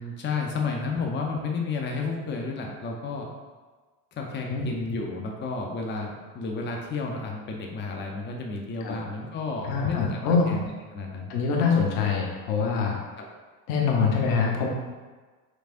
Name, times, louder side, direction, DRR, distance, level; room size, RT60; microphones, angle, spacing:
voice 1, 0.0-3.3 4.1-10.2 10.5-11.3 13.2-13.3, left 4 dB, 25° left, 0 dB, 0.6 m, -32 dB
voice 2, 9.6-10.5 11.3-13.0 13.7-14.7, left 5 dB, 75° left, 0 dB, 1.0 m, -24 dB
4.9 x 3.2 x 2.5 m, 1.3 s
hypercardioid pair, 80°, 49 cm